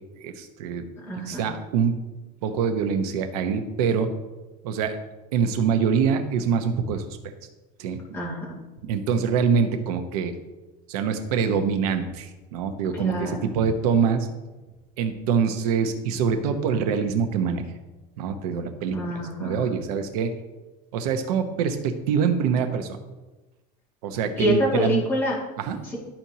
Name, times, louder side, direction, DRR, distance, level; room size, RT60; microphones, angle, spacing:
voice 1, 0.2-0.9 1.3-2.0 2.4-4.1 4.6-5.0 5.3-7.0 7.8-8.2 8.8-10.3 10.9-14.3 15.0-17.6 18.2-20.3 20.9-22.9 24.0-25.0 25.6-25.8, right 6 dB, 70° right, 7 dB, 1.0 m, -24 dB
voice 2, 1.0-1.5 8.1-8.6 12.9-13.5 18.9-19.7 24.4-25.4 25.8-26.0, equal, 10° left, -6 dB, 2.2 m, -27 dB
12.5 x 4.4 x 2.8 m, 1.1 s
supercardioid pair, 165°, 20 cm